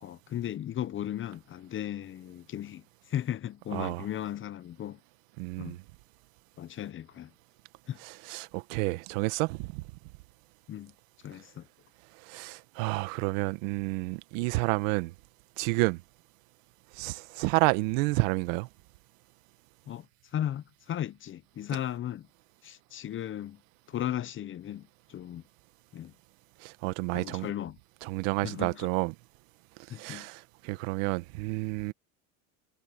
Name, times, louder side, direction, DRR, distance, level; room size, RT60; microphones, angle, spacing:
voice 1, 0.0-5.0 5.6-5.8 6.6-7.3 7.9-8.0 10.7-10.9 11.2-11.7 19.9-20.1 20.3-22.3 22.6-23.6 23.9-25.4 25.9-26.1 27.1-27.8 28.4-28.9 29.9-30.3, left 11 dB, 30° left, 0.8 m, -36 dB
voice 2, 3.7-4.1 5.4-5.8 8.0-9.8 12.2-15.1 15.6-16.0 16.9-18.7 26.6-27.5 28.0-29.1 29.9-31.9, right 24 dB, 70° right, 1.4 m, -30 dB
supercardioid pair, 110°, 40 cm